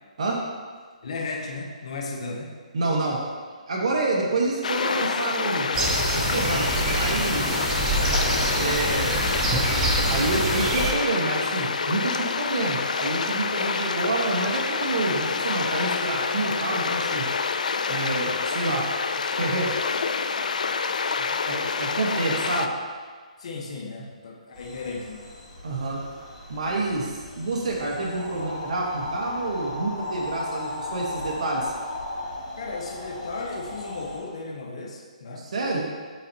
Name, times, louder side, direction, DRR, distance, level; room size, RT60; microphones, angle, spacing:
voice 1, 1.0-2.6 23.4-25.3 32.6-35.5, left 3 dB, 50° left, 1 dB, 0.9 m, -35 dB
voice 2, 2.7-3.2 3.7-5.7 6.1-7.5 8.5-9.2 10.1-17.3 17.9-18.8 19.3-19.7 21.2-22.7 25.6-26.0 26.5-31.7 35.4-35.8, right 2 dB, 55° right, -2 dB, 1.1 m, -28 dB
sound 1, 4.6-22.7, left 5 dB, 75° left, 0.4 m, -27 dB
sound 2, 5.7-10.9, right 2 dB, 10° right, 0.5 m, -25 dB
sound 3, 24.5-34.2, left 2 dB, 15° left, 1.7 m, -36 dB
7.4 x 5.3 x 2.8 m, 1.6 s
hypercardioid pair, 170°, 4 cm